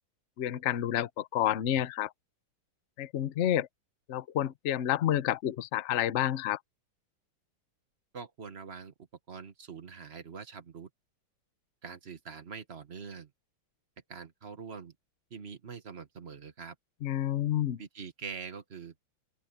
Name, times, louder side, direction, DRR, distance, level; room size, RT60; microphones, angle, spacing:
voice 1, 0.4-2.1 3.0-3.7 4.1-6.6 17.0-17.8, left 11 dB, 75° left, 0.6 m, -29 dB
voice 2, 8.1-8.9 9.3-10.9 11.8-13.3 14.1-14.9 15.3-16.7 17.8-18.9, right 5 dB, 35° right, 1.3 m, -44 dB
open air
omnidirectional pair, 2.3 m